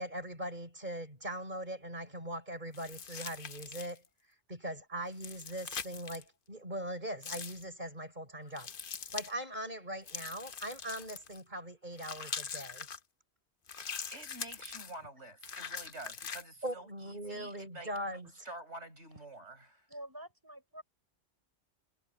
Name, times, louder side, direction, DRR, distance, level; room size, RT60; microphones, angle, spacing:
voice 1, 0.0-4.0 4.5-8.7 9.1-12.9 16.6-18.5, right 1 dB, 40° right, 6.6 m, -41 dB
sound 1, 2.7-4.1 5.1-6.2 7.2-7.6 8.6-9.3 10.1-11.4 12.0-13.0 13.7-14.9 15.4-16.4, left 6 dB, 50° left, 1.1 m, -42 dB
voice 2, 14.1-19.9, right 1 dB, 75° right, 6.9 m, -48 dB
voice 3, 19.9-20.8, right 1 dB, 20° right, 6.5 m, -47 dB
omnidirectional pair, 1.2 m